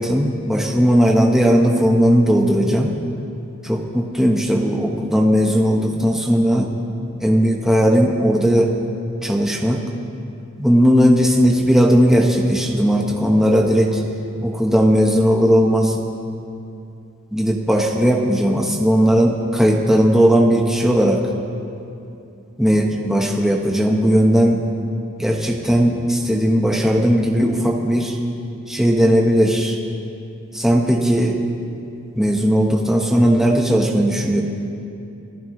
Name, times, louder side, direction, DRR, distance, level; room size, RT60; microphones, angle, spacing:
voice 1, 0.0-2.9 3.6-6.7 7.2-8.7 9.2-9.8 10.6-14.0 14.4-16.0 17.3-21.2 22.6-24.6 25.2-28.2 28.7-29.8 30.5-31.4 32.2-34.4, equal, ahead, 0 dB, 1.0 m, -17 dB
27.0 x 15.0 x 3.2 m, 2.7 s
head